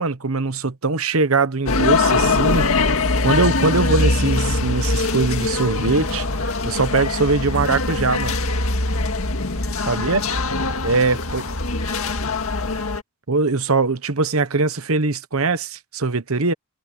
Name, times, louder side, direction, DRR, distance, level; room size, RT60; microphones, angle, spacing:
voice 1, 0.0-2.7 3.2-6.2 6.6-8.3 9.9-10.2 10.8-11.4 13.3-16.5, right 3 dB, 75° right, 1.2 m, -21 dB
sound 1, 1.7-13.0, left 3 dB, 75° left, 2.0 m, -22 dB
voice 2, 9.8-12.9, left 3 dB, 60° left, 4.5 m, -43 dB
head